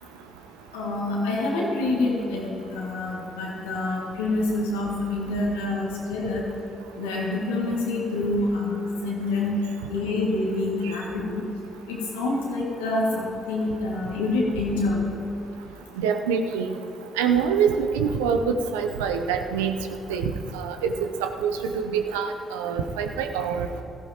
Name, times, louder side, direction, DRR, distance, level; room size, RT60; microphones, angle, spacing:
voice 1, 0.7-6.5 7.0-9.5 9.9-11.4 11.9-15.0, left 2 dB, 80° left, -3 dB, 2.1 m, -27 dB
voice 2, 16.0-16.7 17.2-19.7 20.1-20.2 20.5-20.9 21.2-23.7, right 6 dB, 80° right, 6 dB, 0.6 m, -25 dB
16.5 x 14.0 x 3.0 m, 2.8 s
hypercardioid pair, 45°, 0 cm